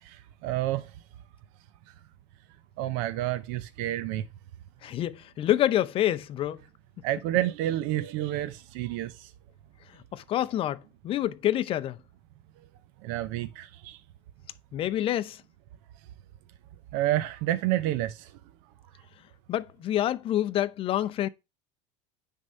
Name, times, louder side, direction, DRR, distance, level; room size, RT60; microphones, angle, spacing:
voice 1, 0.0-0.9 2.8-4.2 7.0-9.3 13.0-14.0 16.9-18.3, right 14 dB, 65° right, 0.6 m, -29 dB
voice 2, 4.8-6.6 10.1-12.0 14.7-15.4 19.5-21.3, left 12 dB, 35° left, 0.6 m, -27 dB
9.7 x 3.7 x 5.4 m
supercardioid pair, 145°, 16 cm